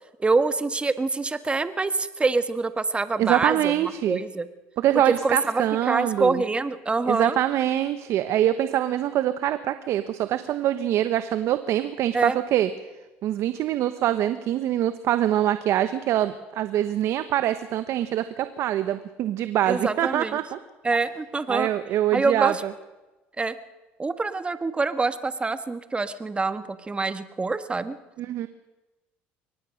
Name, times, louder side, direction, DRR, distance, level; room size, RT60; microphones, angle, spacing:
voice 1, 0.2-3.7 4.1-4.5 5.1-7.4 12.1-12.4 19.7-20.4 20.8-21.7 22.1-22.6 23.4-23.5 24.0-28.0, right 3 dB, 20° right, 11 dB, 1.6 m, -25 dB
voice 2, 3.2-4.2 4.8-6.4 7.1-12.7 13.2-20.6 21.5-22.7 28.2-28.5, right 12 dB, 60° right, 11 dB, 1.1 m, -24 dB
23.5 x 19.0 x 6.5 m, 1.1 s
supercardioid pair, 85°, 5 cm